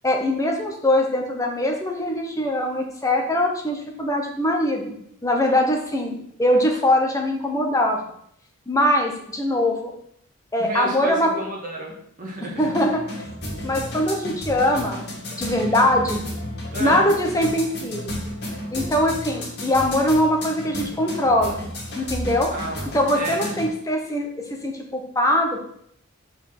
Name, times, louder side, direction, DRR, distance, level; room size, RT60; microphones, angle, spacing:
voice 1, 0.0-8.0 8.7-9.9 10.5-11.3 12.6-13.0 13.6-15.0 15.4-16.2 16.8-18.2 18.7-21.6 21.9-22.5 22.9-24.3 24.6-25.6, left 1 dB, 15° left, 1 dB, 1.0 m, -22 dB
voice 2, 10.6-12.7 15.3-15.5 16.7-17.2 22.5-23.5, right 1 dB, 40° right, -3 dB, 1.9 m, -32 dB
sound 1, 12.5-23.7, left 1 dB, 50° left, 2.6 m, -32 dB
5.2 x 5.0 x 6.0 m, 0.68 s
head